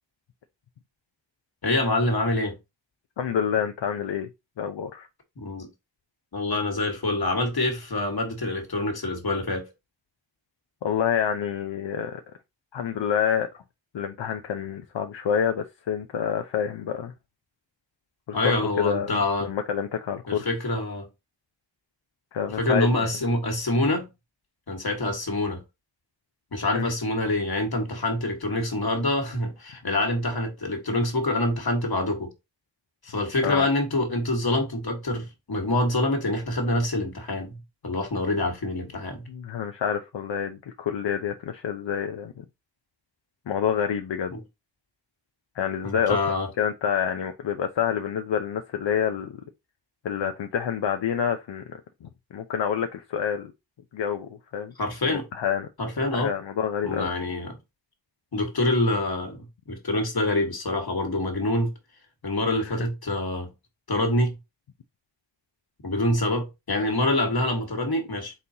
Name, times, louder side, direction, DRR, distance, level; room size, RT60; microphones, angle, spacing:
voice 1, 1.6-2.5 5.4-5.7 6.3-9.7 18.3-19.5 20.3-21.1 22.6-24.1 24.7-25.6 26.5-32.3 33.0-39.3 44.3-44.4 45.8-46.5 54.8-55.3 55.8-56.3 56.8-57.6 58.3-61.7 62.2-63.5 63.9-64.3 65.8-68.3, left 2 dB, 55° left, 1.6 m, -26 dB
voice 2, 3.2-4.3 4.6-5.1 10.8-12.2 12.7-13.5 13.9-17.1 18.3-20.5 22.3-23.1 26.7-26.9 33.4-33.7 39.3-42.4 43.5-44.3 45.6-46.2 46.6-49.4 50.0-53.5 53.9-54.7 55.0-55.7 56.2-57.1 62.7-62.8, left 8 dB, 75° left, 0.6 m, -28 dB
4.2 x 3.8 x 2.8 m
cardioid pair, 50°, 44 cm